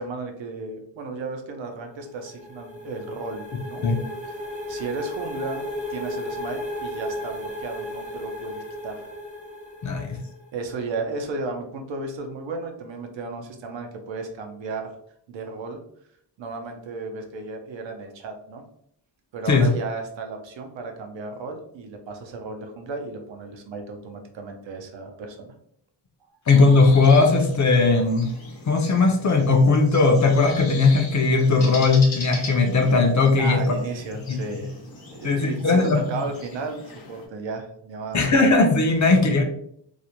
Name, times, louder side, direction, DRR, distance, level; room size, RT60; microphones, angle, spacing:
voice 1, 0.0-3.8 4.4-5.6 5.9-9.1 10.5-14.9 15.3-15.8 16.4-18.6 19.3-25.5 33.4-38.2, right 3 dB, 80° right, 4 dB, 0.6 m, -34 dB
sound 1, 1.8-10.5, left 1 dB, 15° right, 0.5 m, -34 dB
voice 2, 9.8-10.2 19.5-19.7 26.5-28.3 28.7-33.6 34.3-34.4 35.2-36.0 38.1-39.4, left 3 dB, 40° left, 3 dB, 0.4 m, -18 dB
sound 2, 26.5-37.3, left 2 dB, 80° left, 0.9 m, -40 dB
2.4 x 2.1 x 2.8 m, 0.70 s
wide cardioid pair, 120°, 45 cm